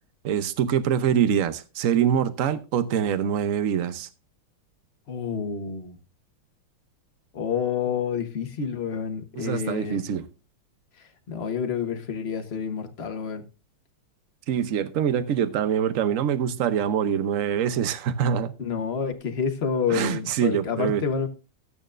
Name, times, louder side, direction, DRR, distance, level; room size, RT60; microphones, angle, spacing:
voice 1, 0.2-4.1 9.4-10.2 14.5-18.5 19.9-21.0, right 8 dB, 65° right, 0.8 m, -24 dB
voice 2, 5.1-6.0 7.3-10.0 11.0-13.4 18.6-21.3, left 6 dB, 40° left, 1.0 m, -29 dB
14.0 x 8.9 x 2.5 m
omnidirectional pair, 2.3 m